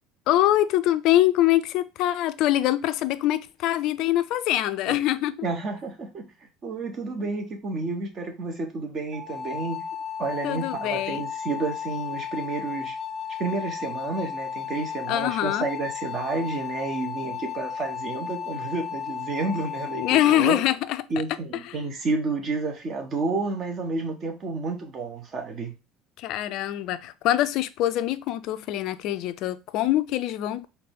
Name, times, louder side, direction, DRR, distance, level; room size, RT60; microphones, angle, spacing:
voice 1, 0.3-5.3 10.4-11.2 15.1-15.7 20.0-21.0 21.7-21.8 26.2-30.7, left 13 dB, 55° left, 0.4 m, -24 dB
voice 2, 5.4-6.3 6.6-9.8 10.2-13.0 13.4-20.6 21.1-25.7, right 3 dB, 40° right, 1.2 m, -30 dB
sound 1, 9.1-20.4, left 8 dB, 15° right, 1.2 m, -34 dB
4.0 x 2.8 x 3.6 m
figure-of-eight pair, 65°, 0 cm